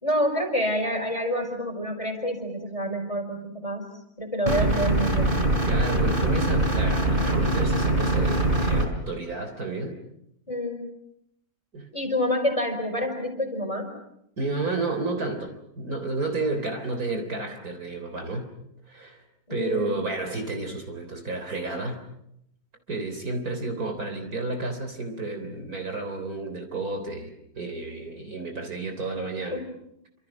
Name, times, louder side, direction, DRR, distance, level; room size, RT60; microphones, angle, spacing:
voice 1, 0.0-3.9 4.2-5.3 10.5-10.8 11.9-13.9 19.5-20.0 29.2-29.6, equal, 15° left, 4 dB, 4.8 m, -28 dB
sound 1, 4.5-8.9, right 1 dB, 25° right, 4.3 m, -23 dB
voice 2, 5.7-10.0 11.7-11.9 14.4-18.5 18.9-19.2 19.5-22.0 22.9-29.6, right 3 dB, 50° right, 6 dB, 3.9 m, -31 dB
29.0 x 26.5 x 6.0 m, 0.78 s
omnidirectional pair, 2.1 m